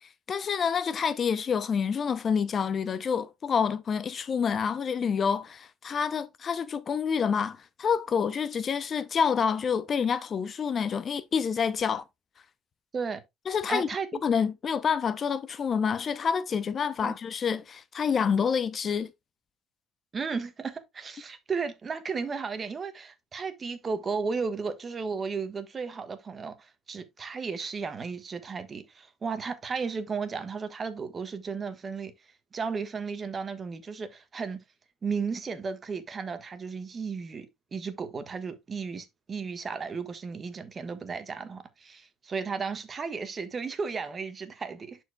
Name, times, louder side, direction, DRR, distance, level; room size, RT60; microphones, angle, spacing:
voice 1, 0.3-12.0 13.5-13.9 14.2-19.1, left 6 dB, 40° left, 0.6 m, -28 dB
voice 2, 13.7-14.2 17.0-17.1 20.1-32.1 32.5-34.6 35.0-45.0, right 5 dB, 35° right, 1.4 m, -34 dB
11.0 x 4.7 x 2.3 m
supercardioid pair, 90°, 0 cm